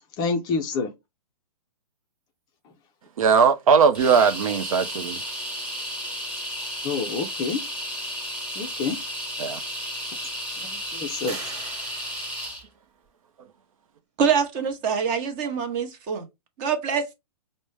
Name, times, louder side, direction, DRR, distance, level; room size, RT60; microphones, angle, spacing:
voice 1, 0.2-0.9 6.8-7.6 8.6-9.0 10.6-11.4, left 4 dB, 20° left, 0.4 m, -27 dB
voice 2, 3.2-5.2 9.4-9.6, right 6 dB, 60° right, 0.5 m, -19 dB
sound 1, 3.9-12.6, equal, 5° right, 1.2 m, -33 dB
sound 2, 11.3-13.2, right 4 dB, 45° right, 1.4 m, -44 dB
voice 3, 14.2-16.3 16.6-17.1, right 6 dB, 30° right, 0.9 m, -25 dB
5.1 x 2.1 x 3.2 m
hypercardioid pair, 135°, 20 cm